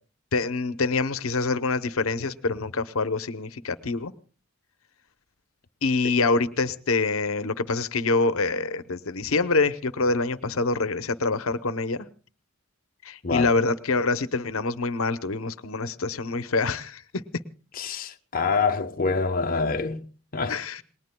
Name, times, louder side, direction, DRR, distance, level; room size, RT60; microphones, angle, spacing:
voice 1, 0.3-4.1 5.8-12.1 13.0-17.2 20.5-20.8, left 3 dB, 75° left, 0.8 m, -26 dB
voice 2, 17.7-20.6, left 4 dB, 40° left, 0.8 m, -26 dB
28.5 x 20.5 x 2.2 m
head